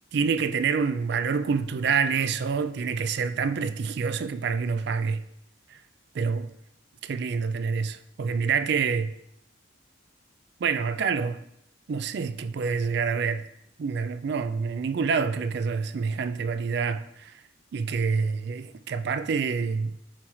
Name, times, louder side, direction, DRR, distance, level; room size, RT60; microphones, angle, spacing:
voice 1, 0.1-5.2 5.7-5.8 6.1-6.5 7.0-9.1 10.6-11.4 11.9-13.5 13.8-17.3 17.7-20.0, right 5 dB, 60° right, 0.3 m, -27 dB
8.4 x 4.4 x 3.1 m
head